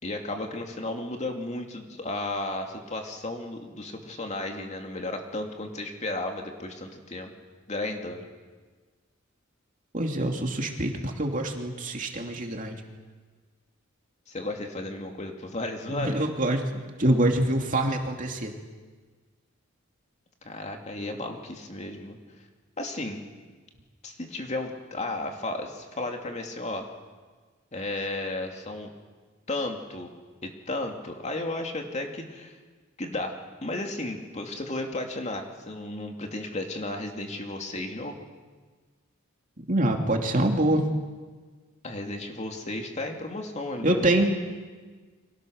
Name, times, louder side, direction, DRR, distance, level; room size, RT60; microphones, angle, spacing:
voice 1, 0.0-7.3 7.7-8.3 14.3-16.3 20.4-22.2 22.8-23.2 24.0-26.9 27.7-28.9 29.5-30.1 30.4-32.6 33.0-33.3 33.6-38.2 41.8-44.0, left 2 dB, 35° left, 3 dB, 2.6 m, -34 dB
voice 2, 9.9-12.8 15.9-18.5 39.7-40.9 43.8-44.3, right 1 dB, 40° right, 2 dB, 2.8 m, -25 dB
30.0 x 24.0 x 6.6 m, 1.4 s
head